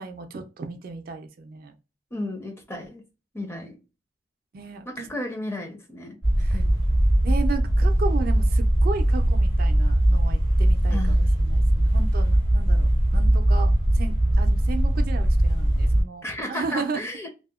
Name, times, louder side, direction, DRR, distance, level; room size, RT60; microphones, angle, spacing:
voice 1, 0.0-1.7 4.5-5.1 6.4-6.6 7.2-17.1, right 4 dB, 55° right, 0.4 m, -34 dB
voice 2, 2.1-3.0 3.3-3.8 4.9-6.7 10.9-11.3 16.2-17.3, left 1 dB, 15° left, 0.5 m, -34 dB
sound 1, 6.2-16.0, right 1 dB, 65° left, 1.5 m, -20 dB
2.7 x 2.1 x 2.2 m
head